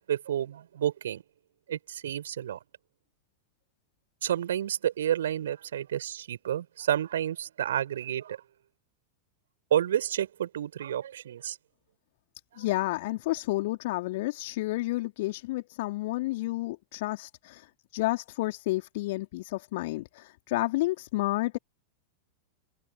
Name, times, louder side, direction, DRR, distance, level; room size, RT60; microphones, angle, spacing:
voice 1, 0.1-1.2 1.7-2.6 4.2-8.4 9.7-11.6, right 10 dB, 60° right, 4.7 m, -30 dB
voice 2, 12.6-17.6 17.9-21.6, left 19 dB, 50° left, 4.3 m, -30 dB
figure-of-eight pair, 90°, 0 cm